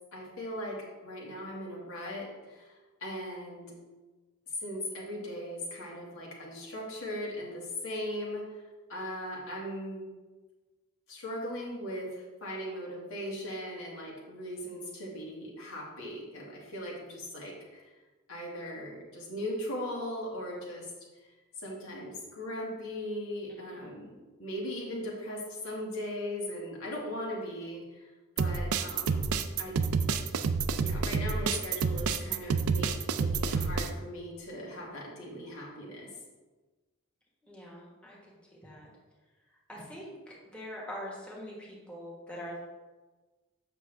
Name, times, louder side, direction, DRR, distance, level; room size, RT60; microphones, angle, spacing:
voice 1, 0.1-2.8 3.0-3.7 4.6-8.6 8.9-10.0 11.1-17.9 18.3-20.9 21.2-24.1 24.4-28.1 28.4-29.3 29.6-29.8 30.8-36.1, left 1 dB, 75° left, -3 dB, 2.0 m, -39 dB
sound 1, 28.4-33.9, right 5 dB, 90° right, 0.5 m, -29 dB
voice 2, 37.5-38.1 38.6-38.9 39.7-40.1 40.5-41.5 41.9-42.6, equal, 5° left, -5 dB, 1.4 m, -42 dB
7.6 x 6.1 x 3.4 m, 1.2 s
head